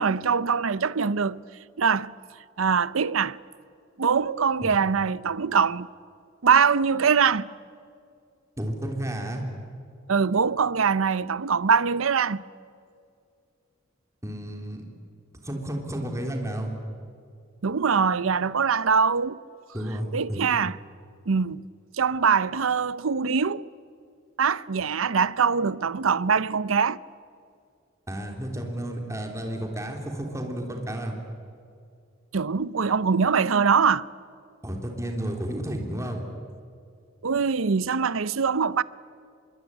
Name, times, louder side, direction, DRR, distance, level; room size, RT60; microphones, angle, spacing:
voice 1, 0.0-1.4 1.8-2.1 2.6-3.4 4.0-5.9 6.4-7.5 10.1-12.4 17.6-19.4 20.1-20.8 21.3-21.7 22.0-23.7 24.4-27.0 32.3-34.1 37.2-38.8, right 6 dB, 85° right, 0.7 m, -23 dB
voice 2, 8.6-9.4 14.2-14.8 15.4-16.7 19.7-20.5 28.1-31.1 34.6-36.2, right 1 dB, 15° right, 3.5 m, -32 dB
25.5 x 23.0 x 9.8 m
head